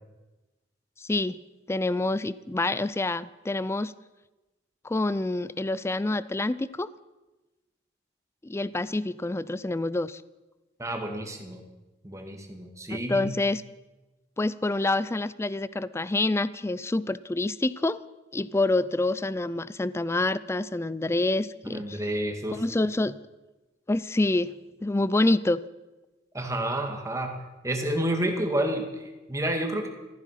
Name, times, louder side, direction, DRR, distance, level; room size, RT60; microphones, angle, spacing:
voice 1, 1.0-1.4 1.7-3.9 4.8-6.9 8.4-10.2 12.9-13.6 14.4-18.0 18.3-22.0 22.5-23.2 23.9-24.5 24.8-25.6, left 2 dB, 15° left, 17 dB, 0.4 m, -27 dB
voice 2, 10.8-11.6 12.0-13.2 21.6-22.6 26.3-27.3 27.6-29.9, right 1 dB, 15° right, 3 dB, 2.1 m, -30 dB
15.0 x 14.5 x 5.8 m, 1.1 s
head